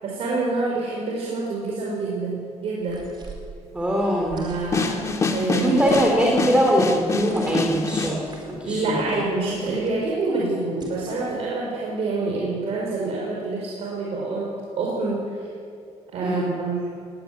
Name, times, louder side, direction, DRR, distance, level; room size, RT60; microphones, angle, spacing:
voice 1, 0.0-3.1 4.3-5.0 5.3-5.8 8.6-15.5 16.1-16.9, right 3 dB, 60° right, -3 dB, 5.4 m, -27 dB
sound 1, 2.8-3.5 4.2-4.9 5.8-6.4 7.3-7.8 8.0-8.6 9.4-10.0 10.8-11.3, right 3 dB, 40° right, 4.5 m, -41 dB
voice 2, 3.7-4.4 5.5-8.2 8.4-9.0 16.2-16.5, equal, 10° right, -1 dB, 3.2 m, -21 dB
sound 2, 4.7-8.2, left 4 dB, 25° left, 2.0 m, -26 dB
19.5 x 18.0 x 9.7 m, 2.3 s
cardioid pair, 150°, 12 cm